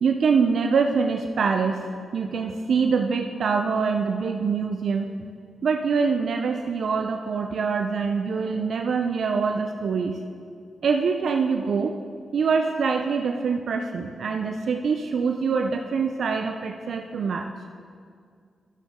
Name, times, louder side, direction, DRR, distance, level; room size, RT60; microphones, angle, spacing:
voice 1, 0.0-1.9 2.1-5.1 5.6-10.2 10.8-11.9 12.3-17.5, right 5 dB, 70° right, 4 dB, 0.4 m, -24 dB
11.0 x 7.3 x 3.6 m, 2.2 s
cardioid pair, 70°, 0 cm